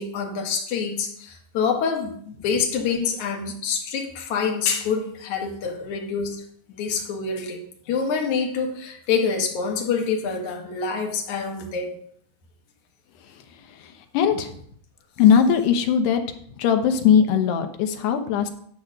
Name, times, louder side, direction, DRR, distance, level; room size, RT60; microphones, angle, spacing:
voice 1, 0.0-6.4 6.7-7.6 7.9-11.9, left 5 dB, 55° left, 1 dB, 2.7 m, -26 dB
voice 2, 14.1-14.5 15.2-16.2 16.6-18.5, left 7 dB, 90° left, 7 dB, 3.1 m, -19 dB
10.5 x 4.8 x 7.8 m, 0.63 s
omnidirectional pair, 4.7 m